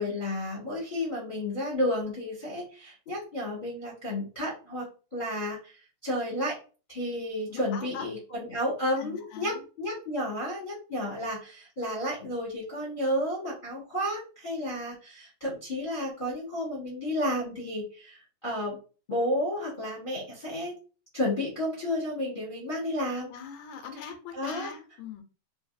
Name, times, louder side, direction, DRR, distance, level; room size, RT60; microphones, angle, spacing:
voice 1, 0.0-5.8 6.0-6.6 6.9-18.7 19.1-20.7 21.1-23.3 24.3-24.7, left 1 dB, 30° left, -6 dB, 0.9 m, -32 dB
voice 2, 7.5-8.2 9.0-9.6 23.3-25.2, left 7 dB, 90° left, 5 dB, 2.0 m, -41 dB
4.6 x 2.7 x 2.5 m, 0.35 s
omnidirectional pair, 3.3 m